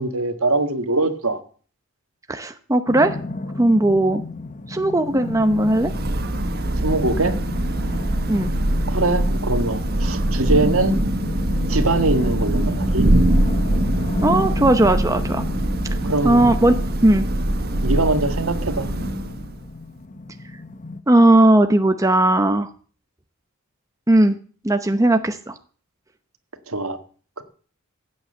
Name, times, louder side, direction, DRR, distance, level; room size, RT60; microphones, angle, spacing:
voice 1, 0.0-1.4 6.8-7.4 8.9-11.0 11.7-13.1 16.0-16.5 17.8-18.9 26.7-27.0 27.4-27.5, right 2 dB, 70° right, 8 dB, 1.8 m, -22 dB
voice 2, 2.3-3.2 3.6-4.2 4.7-5.9 8.3-8.5 14.2-15.4 16.2-16.8 17.0-17.3 21.1-22.7 24.1-24.4 24.6-25.5, right 1 dB, 15° right, 7 dB, 0.8 m, -17 dB
sound 1, 2.9-21.0, left 2 dB, 35° left, 1.2 m, -33 dB
Thunder / Rain, 5.4-19.7, right 1 dB, 45° right, 1.4 m, -23 dB
15.5 x 8.9 x 7.9 m, 0.43 s
head